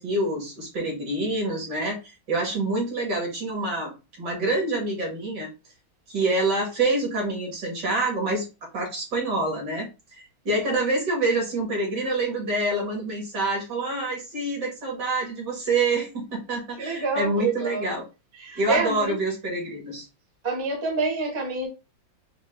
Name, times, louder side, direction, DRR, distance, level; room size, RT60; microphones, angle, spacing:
voice 1, 0.0-2.0 2.3-5.5 6.1-8.5 8.7-18.0 18.6-20.0, right 2 dB, 60° right, 2.3 m, -27 dB
voice 2, 16.8-17.9 18.3-19.2 20.4-21.7, right 3 dB, 20° right, 1.0 m, -27 dB
5.4 x 2.5 x 2.6 m
omnidirectional pair, 2.1 m